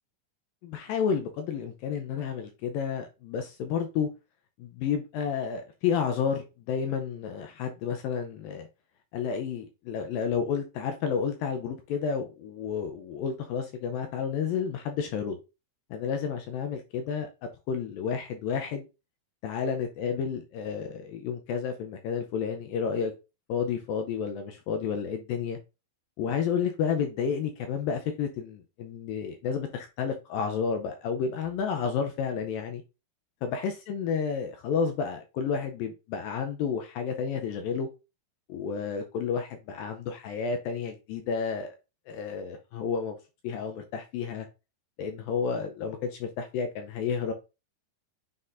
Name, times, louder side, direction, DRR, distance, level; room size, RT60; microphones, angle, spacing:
voice 1, 0.6-4.1 4.6-8.7 9.1-15.4 15.9-17.3 17.7-18.9 19.4-23.1 23.5-25.6 26.2-32.8 33.4-37.9 38.5-41.8 42.1-43.2 43.4-44.5 45.0-47.3, left 6 dB, 75° left, 2.2 m, -31 dB
9.6 x 4.1 x 2.5 m
omnidirectional pair, 4.5 m